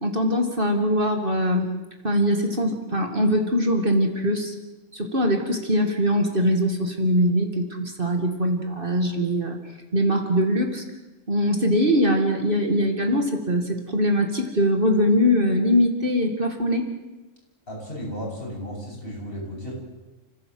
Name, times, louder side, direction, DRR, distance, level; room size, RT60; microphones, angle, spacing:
voice 1, 0.0-1.7 2.0-4.5 4.9-9.6 9.9-10.8 11.3-16.9, equal, 45° right, 4 dB, 2.5 m, -22 dB
voice 2, 17.7-19.8, equal, 45° left, -2 dB, 8.2 m, -34 dB
30.0 x 16.5 x 7.9 m, 1.1 s
omnidirectional pair, 1.3 m